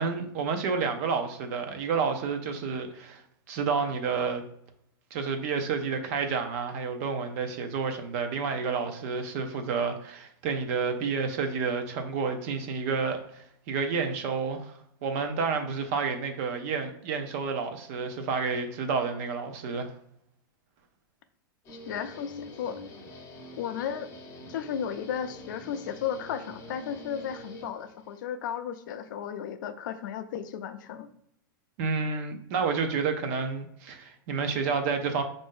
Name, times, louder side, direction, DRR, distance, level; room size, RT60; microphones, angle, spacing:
voice 1, 0.0-4.4 5.1-14.7 15.0-19.9 31.8-35.2, right 5 dB, 40° right, 6 dB, 0.6 m, -30 dB
Guitar, 21.6-28.2, left 1 dB, 25° left, 0.7 m, -45 dB
voice 2, 21.9-22.8 23.6-24.1 24.5-31.1, left 8 dB, 60° left, 9 dB, 0.4 m, -34 dB
5.2 x 2.6 x 3.6 m, 0.73 s
supercardioid pair, 160°, 12 cm